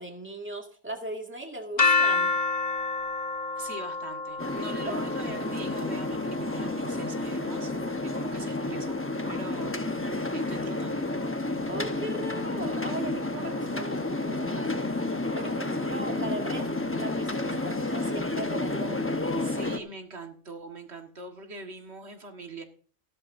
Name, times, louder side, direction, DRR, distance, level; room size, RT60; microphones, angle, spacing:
voice 1, 0.0-2.4 11.7-15.0 15.3-16.7 17.0-19.2, right 1 dB, 10° right, 2 dB, 1.9 m, -38 dB
sound 1, 1.8-7.7, left 4 dB, 40° left, 1.8 m, -29 dB
voice 2, 3.6-9.8 10.3-11.1 19.4-22.6, right 2 dB, 85° right, 4 dB, 1.9 m, -42 dB
sound 2, 4.4-19.8, left 2 dB, 15° left, 0.9 m, -30 dB
15.5 x 12.5 x 2.6 m, 0.43 s
omnidirectional pair, 1.1 m